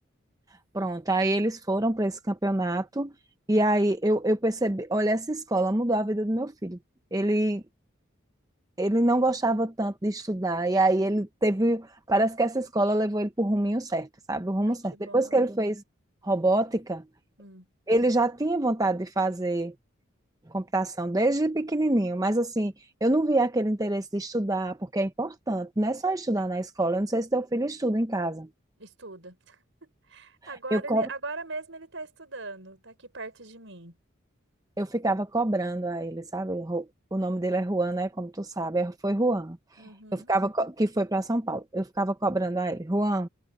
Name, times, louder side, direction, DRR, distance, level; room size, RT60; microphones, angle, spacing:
voice 1, 0.7-3.1 3.5-6.8 7.1-7.6 8.8-15.8 16.2-17.0 17.9-19.7 20.5-22.7 23.0-28.5 30.7-31.1 34.8-39.6 40.1-43.3, right 1 dB, 15° right, 0.8 m, -26 dB
voice 2, 14.7-15.5 17.4-17.7 28.8-34.0 39.8-40.3, right 3 dB, 70° right, 5.2 m, -41 dB
head